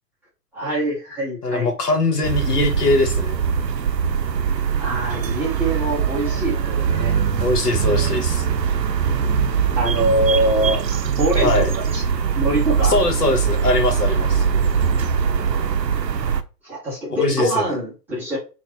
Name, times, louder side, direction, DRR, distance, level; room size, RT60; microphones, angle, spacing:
voice 1, 0.5-1.7 2.6-2.7 4.8-7.2 9.7-12.0 12.3-13.0 16.6-18.4, right 1 dB, 5° right, 0.5 m, -24 dB
voice 2, 1.4-3.4 7.4-8.5 11.4-11.7 12.8-14.4 17.1-17.8, left 2 dB, 70° left, 1.2 m, -21 dB
sound 1, 2.2-16.4, right 7 dB, 90° right, 0.6 m, -21 dB
4.4 x 2.4 x 2.9 m
figure-of-eight pair, 110°, 49 cm